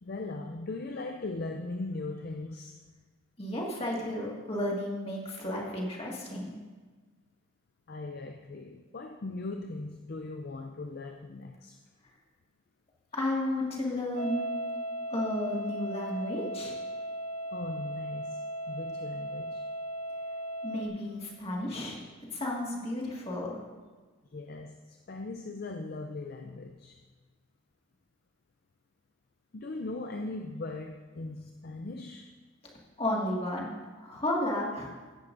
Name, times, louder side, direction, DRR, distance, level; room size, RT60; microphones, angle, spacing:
voice 1, 0.0-2.8 7.9-11.8 17.5-18.4 18.7-19.7 24.3-27.0 29.5-32.3, left 2 dB, 45° left, 4 dB, 0.5 m, -39 dB
voice 2, 3.4-6.5 13.1-14.5 15.1-16.8 20.6-22.0 22.3-23.6 33.0-34.9, left 1 dB, 30° left, -3 dB, 1.9 m, -33 dB
sound 1, 14.1-20.9, right 1 dB, 75° left, 1.2 m, -37 dB
15.5 x 10.5 x 2.6 m, 1.4 s
head